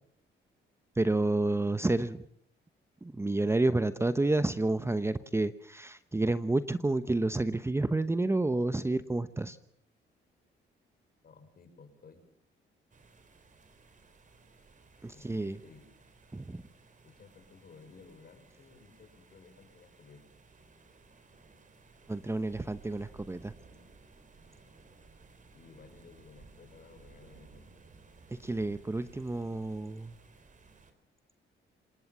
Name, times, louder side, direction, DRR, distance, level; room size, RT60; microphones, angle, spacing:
voice 1, 0.9-2.2 3.0-9.6 15.0-15.6 16.3-16.6 22.1-23.5 28.3-30.2, right 2 dB, 15° right, 13 dB, 0.9 m, -30 dB
voice 2, 11.2-12.2 15.1-15.9 17.0-20.3 25.5-27.7, left 4 dB, 50° left, 7 dB, 5.9 m, -56 dB
sound 1, 12.9-30.9, right 4 dB, 40° right, 3.9 m, -58 dB
26.5 x 19.5 x 7.4 m, 0.67 s
cardioid pair, 90°, 20 cm